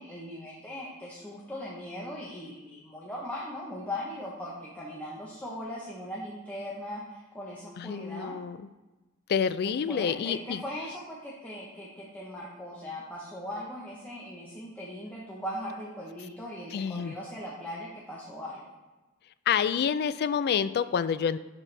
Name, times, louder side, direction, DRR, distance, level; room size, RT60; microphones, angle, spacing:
voice 1, 0.0-8.4 9.6-18.6, left 1 dB, 10° left, -6 dB, 0.9 m, -39 dB
voice 2, 7.8-8.6 9.3-10.6 16.7-17.1 19.5-21.4, left 7 dB, 50° left, 14 dB, 0.3 m, -28 dB
11.0 x 4.2 x 3.3 m, 1.1 s
head